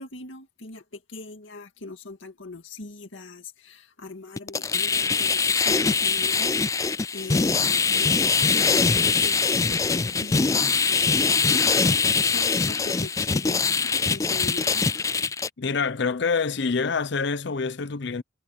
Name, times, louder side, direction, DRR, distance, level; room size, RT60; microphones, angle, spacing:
voice 1, 0.0-11.3 12.3-14.8, left 2 dB, 80° left, 2.1 m, -41 dB
sound 1, 4.4-15.5, left 5 dB, 15° left, 0.3 m, -22 dB
voice 2, 15.6-18.2, left 5 dB, 65° left, 0.7 m, -26 dB
head